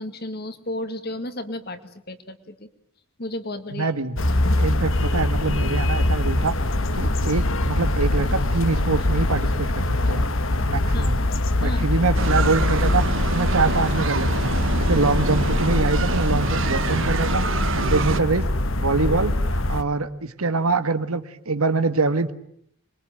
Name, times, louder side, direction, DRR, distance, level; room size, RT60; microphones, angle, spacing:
voice 1, 0.0-1.8 2.1-2.7 3.2-3.9 10.9-11.1 11.6-11.9, left 1 dB, 45° left, 9 dB, 2.2 m, -33 dB
voice 2, 3.7-4.2 4.6-6.5 6.9-10.2 10.7-11.2 11.6-13.0 13.3-14.5 14.8-17.4 17.7-18.5 18.8-19.3 19.7-22.3, right 3 dB, 85° right, 11 dB, 1.7 m, -24 dB
sound 1, 4.2-19.8, left 1 dB, 65° left, 1.4 m, -23 dB
sound 2, 12.1-18.2, right 3 dB, 60° right, 1.3 m, -27 dB
26.0 x 22.5 x 9.2 m, 0.69 s
head